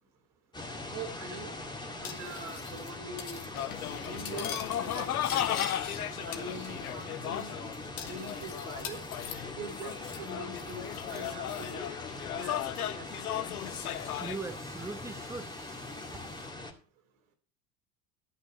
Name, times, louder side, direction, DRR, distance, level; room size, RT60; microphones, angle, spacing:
sound 1, 0.5-16.7, left 2 dB, 10° left, 2.2 m, -42 dB
voice 1, 0.8-1.5 2.0-3.5 3.9-5.6 6.1-7.6 8.0-9.0 9.5-11.9 12.4-13.4, right 3 dB, 60° right, 2.8 m, -44 dB
Cutlery silverware, 2.0-2.9 3.2-3.5 3.7-6.0 6.3-7.0 7.3-7.4 8.0-10.3 10.6-11.7, left 8 dB, 70° left, 1.9 m, -43 dB
sound 2, 3.5-14.4, left 11 dB, 85° left, 0.6 m, -36 dB
voice 2, 13.6-16.5, right 3 dB, 5° right, 1.2 m, -43 dB
12.0 x 8.3 x 5.2 m
figure-of-eight pair, 75°, 43 cm